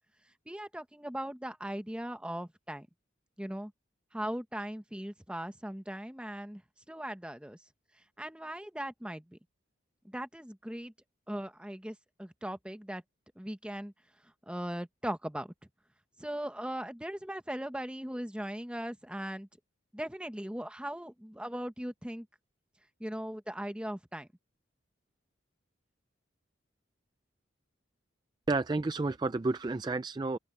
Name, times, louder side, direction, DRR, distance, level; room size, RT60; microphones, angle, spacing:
voice 1, 0.5-2.9 3.4-3.7 4.1-6.6 6.9-7.6 8.2-9.4 10.0-10.9 11.3-13.0 13.4-13.9 14.5-15.5 16.2-19.5 19.9-22.3 23.0-24.3, right 1 dB, 5° right, 0.9 m, -39 dB
voice 2, 28.5-30.4, right 3 dB, 20° right, 0.3 m, -31 dB
open air
head